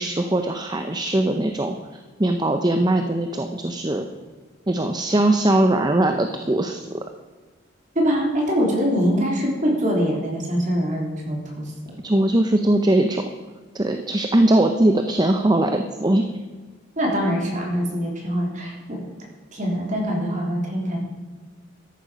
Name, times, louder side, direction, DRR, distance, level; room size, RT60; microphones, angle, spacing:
voice 1, 0.0-1.8 2.2-4.1 4.7-6.9 12.0-13.2 13.7-16.3, right 1 dB, 20° right, 6 dB, 0.7 m, -20 dB
voice 2, 8.0-11.7 17.0-19.0 19.5-21.0, equal, 40° right, -1 dB, 3.5 m, -23 dB
13.5 x 11.0 x 5.1 m, 1.4 s
head